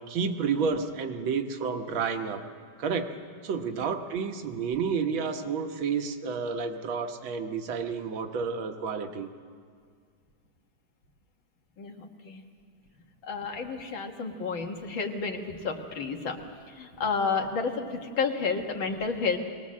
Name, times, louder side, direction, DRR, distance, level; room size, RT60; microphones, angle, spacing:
voice 1, 0.0-2.4 2.8-3.2 3.4-9.3, right 5 dB, 85° right, 6 dB, 1.9 m, -30 dB
voice 2, 11.8-12.4 13.2-16.4 16.7-19.4, left 4 dB, 75° left, 3 dB, 2.3 m, -31 dB
22.5 x 18.5 x 7.4 m, 2.1 s
omnidirectional pair, 2.1 m